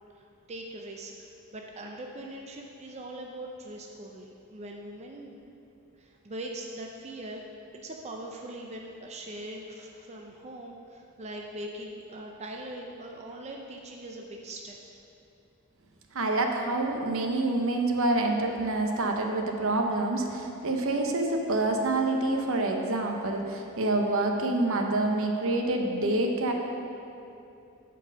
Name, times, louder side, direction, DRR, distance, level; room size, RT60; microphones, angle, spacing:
voice 1, 0.1-5.5 6.0-7.4 7.7-14.8, right 1 dB, 30° right, 1 dB, 0.5 m, -41 dB
voice 2, 16.1-26.5, right 2 dB, 65° right, 3 dB, 0.8 m, -27 dB
8.3 x 4.6 x 6.4 m, 2.8 s
head